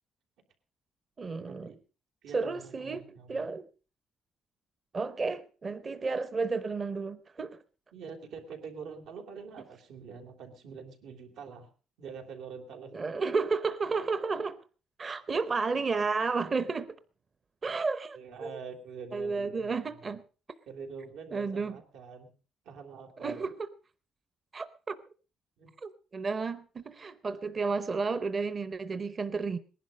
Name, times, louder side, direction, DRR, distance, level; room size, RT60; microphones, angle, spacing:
voice 1, 1.2-1.7 2.3-3.7 4.9-7.6 12.9-14.6 15.0-17.0 17.6-18.6 19.1-20.2 21.3-21.8 23.2-23.7 24.5-25.0 25.8-29.6, right 4 dB, 30° right, 0.6 m, -32 dB
voice 2, 2.2-3.5 7.9-11.7 12.0-12.9 18.1-19.8 20.7-22.3 22.6-23.5 25.6-25.7, right 5 dB, 90° right, 3.3 m, -45 dB
19.5 x 11.0 x 5.2 m
cardioid pair, 155°, 0 cm